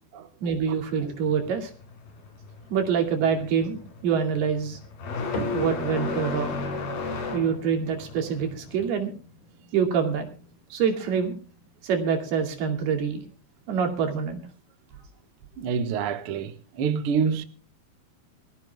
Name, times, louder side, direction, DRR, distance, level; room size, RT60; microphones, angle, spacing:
voice 1, 0.4-1.7 2.7-4.8 5.5-6.6 7.3-9.1 9.7-10.3 10.7-11.4 11.8-13.2 13.7-14.4, right 7 dB, 85° right, 4.6 m, -25 dB
sound 1, 0.7-8.9, left 4 dB, 70° left, 5.7 m, -34 dB
sound 2, 5.3-12.1, equal, 40° left, 4.5 m, -42 dB
voice 2, 15.6-17.4, right 6 dB, 60° right, 1.4 m, -27 dB
23.5 x 15.0 x 2.3 m
omnidirectional pair, 4.4 m